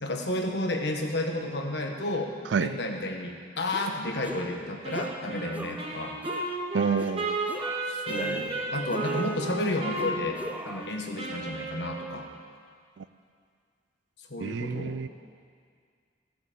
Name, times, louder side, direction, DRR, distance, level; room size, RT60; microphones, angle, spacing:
voice 1, 0.0-6.2 7.8-12.3 14.3-15.0, left 1 dB, 65° left, 3 dB, 1.4 m, -32 dB
sound 1, 3.7-3.9 4.2-4.6 4.9-5.2 5.5-5.9 6.2-6.5 7.0-7.2 7.5-8.6 8.9-9.5 10.0-10.9, right 1 dB, 10° right, 0.5 m, -41 dB
Wind instrument woodwind instrument, 4.8-12.3, right 2 dB, 30° right, 2.1 m, -33 dB
voice 2, 6.7-7.4 13.0-13.1 14.4-15.1, right 6 dB, 75° right, 14 dB, 0.4 m, -28 dB
15.0 x 7.7 x 7.4 m, 2.1 s
head